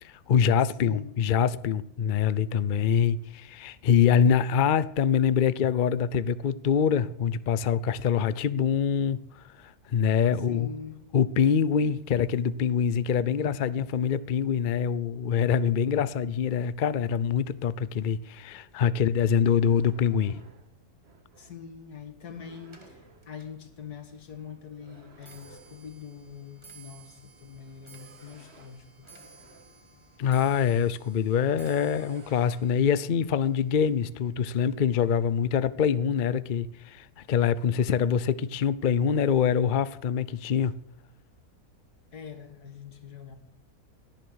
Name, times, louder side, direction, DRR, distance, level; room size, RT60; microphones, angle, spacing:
voice 1, 0.0-9.2 9.6-10.7 11.1-20.4 30.2-40.8, left 7 dB, 55° left, 0.5 m, -25 dB
voice 2, 0.6-1.2 10.5-11.0 18.5-18.6 21.4-29.1 42.1-43.4, left 7 dB, 85° left, 2.3 m, -43 dB
sound 1, 19.5-21.7 22.3-23.4 24.8-26.0 27.5-29.8 30.7-30.8 31.1-32.6, right 3 dB, 45° right, 1.8 m, -56 dB
Clock, 22.7-36.0 36.3-36.8 37.6-37.7 38.0-38.4 38.7-38.8, right 3 dB, 20° right, 2.1 m, -55 dB
17.5 x 10.5 x 6.3 m
omnidirectional pair, 1.6 m